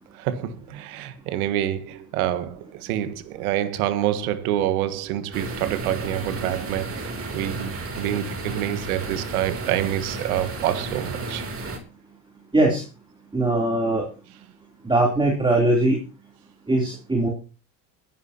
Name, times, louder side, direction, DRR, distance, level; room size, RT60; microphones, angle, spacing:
voice 1, 0.1-7.7 8.0-11.4, right 12 dB, 85° right, 1.5 m, -27 dB
sound 1, 5.3-11.8, right 2 dB, 30° right, 3.1 m, -33 dB
voice 2, 12.5-12.8 13.3-14.1 14.8-16.0 16.7-17.3, right 2 dB, 10° right, 3.2 m, -20 dB
22.0 x 11.0 x 2.8 m
supercardioid pair, 95°, 43 cm